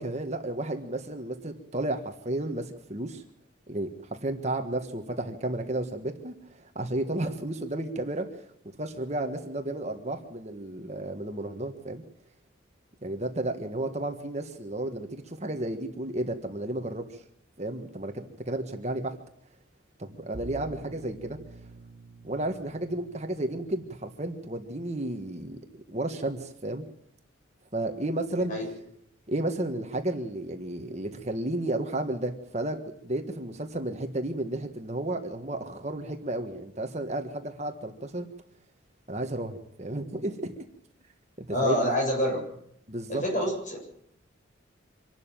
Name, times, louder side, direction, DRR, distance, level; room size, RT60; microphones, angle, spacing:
voice 1, 0.0-3.2 3.7-8.5 8.8-12.0 13.0-17.2 17.6-19.1 20.0-21.6 22.2-25.6 25.9-26.8 27.7-28.7 29.3-38.3 39.1-40.5 41.4-41.9 42.9-43.2, right 1 dB, 35° right, 5 dB, 1.5 m, -32 dB
Bowed string instrument, 20.3-25.4, right 3 dB, 50° right, 1.0 m, -48 dB
voice 2, 41.5-42.4 43.1-43.8, equal, 40° left, 0 dB, 7.8 m, -26 dB
25.5 x 12.0 x 9.1 m, 0.71 s
head